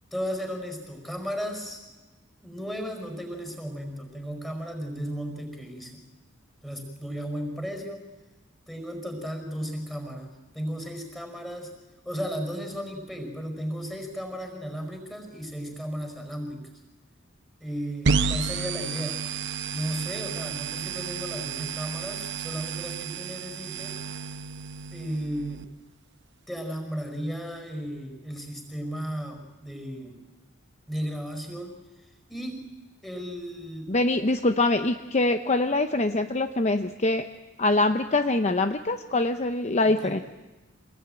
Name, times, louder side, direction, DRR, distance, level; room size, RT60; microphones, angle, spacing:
voice 1, 0.1-1.8 2.4-6.0 6.6-8.1 8.7-11.7 12.0-16.7 17.6-19.2 19.7-24.0 24.9-25.7 26.5-30.2 30.9-31.7 32.3-32.6 33.0-33.9 39.8-40.2, equal, ahead, 4 dB, 5.0 m, -35 dB
sound 1, 18.0-25.6, right 5 dB, 60° right, 0.9 m, -31 dB
voice 2, 33.9-37.3 37.6-40.2, left 2 dB, 35° left, 7 dB, 0.8 m, -24 dB
26.5 x 20.0 x 9.0 m, 1.1 s
head